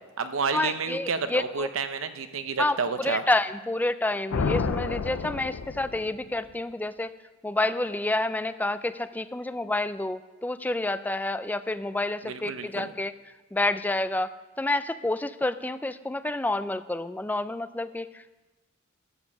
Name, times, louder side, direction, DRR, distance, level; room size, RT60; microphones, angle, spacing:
voice 1, 0.0-3.2 12.2-12.9, right 5 dB, 70° right, 10 dB, 0.8 m, -30 dB
voice 2, 0.5-1.7 2.6-7.2 7.4-13.1 13.5-18.3, left 2 dB, 10° left, 13 dB, 0.3 m, -29 dB
sound 1, 4.3-6.3, left 4 dB, 75° left, 0.5 m, -30 dB
12.5 x 7.3 x 6.9 m, 1.2 s
head